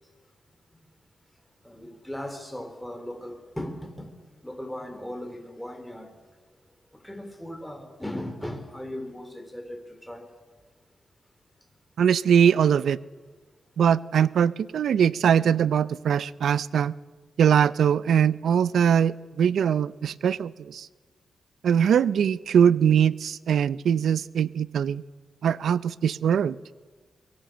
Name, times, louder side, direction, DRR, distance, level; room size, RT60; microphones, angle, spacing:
voice 1, 1.6-4.1 4.4-6.1 7.0-10.3, left 1 dB, 5° left, 3.7 m, -37 dB
voice 2, 12.0-13.0 13.8-16.9 17.4-20.9 21.6-25.0 25.4-26.6, right 8 dB, 80° right, 0.6 m, -22 dB
23.0 x 18.0 x 7.7 m
cardioid pair, 80°, 0 cm